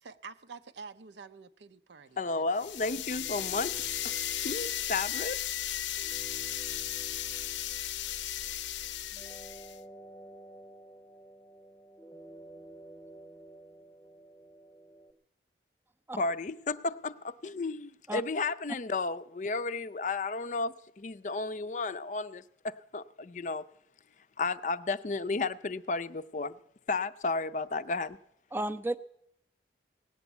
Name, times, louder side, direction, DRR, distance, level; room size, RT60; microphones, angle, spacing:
voice 1, 0.0-3.8, right 5 dB, 80° right, 0.7 m, -50 dB
voice 2, 2.2-3.8 4.4-5.4 16.2-23.6 24.4-26.5 26.9-28.2, left 3 dB, 40° left, 0.5 m, -33 dB
sound 1, 2.6-9.8, left 12 dB, 90° left, 0.6 m, -35 dB
sound 2, 3.1-15.1, right 1 dB, 15° left, 0.9 m, -52 dB
voice 3, 28.5-29.0, right 1 dB, 10° right, 0.5 m, -32 dB
18.0 x 8.0 x 8.3 m
head